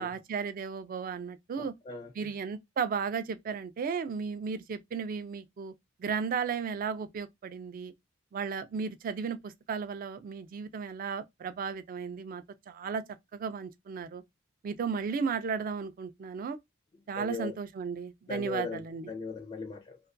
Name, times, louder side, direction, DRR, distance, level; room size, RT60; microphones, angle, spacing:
voice 1, 0.0-1.7 2.2-5.7 6.0-7.9 8.3-13.0 13.3-14.2 14.6-16.6 17.1-19.1, right 6 dB, 45° right, 0.3 m, -34 dB
voice 2, 1.6-2.1 17.2-17.5 18.3-20.0, left 4 dB, 30° left, 0.4 m, -38 dB
2.3 x 2.2 x 2.5 m
head